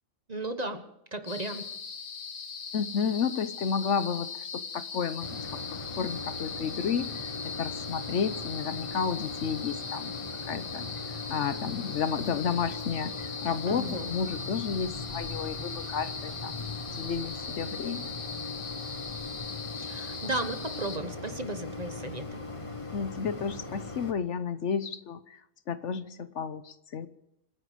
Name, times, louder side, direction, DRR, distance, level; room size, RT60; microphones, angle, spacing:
voice 1, 0.3-0.8 1.1-1.7 13.7-14.1 19.8-22.4, right 2 dB, 30° right, 8 dB, 1.3 m, -35 dB
sound 1, 1.3-21.0, left 5 dB, 85° left, 1.9 m, -40 dB
voice 2, 2.7-18.1 22.9-25.4 25.7-27.1, left 6 dB, 65° left, 12 dB, 1.1 m, -32 dB
Mechanisms, 5.2-24.1, left 3 dB, 25° left, 1.6 m, -40 dB
26.5 x 10.5 x 5.0 m, 0.79 s
omnidirectional pair, 1.4 m